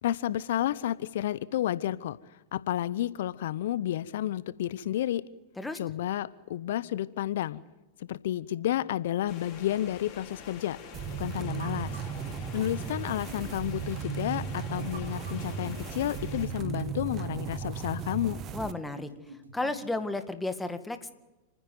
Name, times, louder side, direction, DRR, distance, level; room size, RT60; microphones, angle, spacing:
voice 1, 0.0-2.2 2.5-5.2 5.8-7.6 8.0-10.8 11.2-12.0 12.5-18.4, left 12 dB, 65° left, 18 dB, 0.9 m, -31 dB
sound 1, 9.3-16.5, left 6 dB, 40° left, 4.9 m, -46 dB
sound 2, 10.9-18.7, right 7 dB, 35° right, 1.3 m, -36 dB
sound 3, 11.6-19.9, right 2 dB, 85° right, 3.5 m, -50 dB
voice 2, 18.5-19.1 19.5-21.1, left 2 dB, 10° left, 9 dB, 2.0 m, -33 dB
29.5 x 10.0 x 9.4 m, 1.1 s
hypercardioid pair, 95°, 0 cm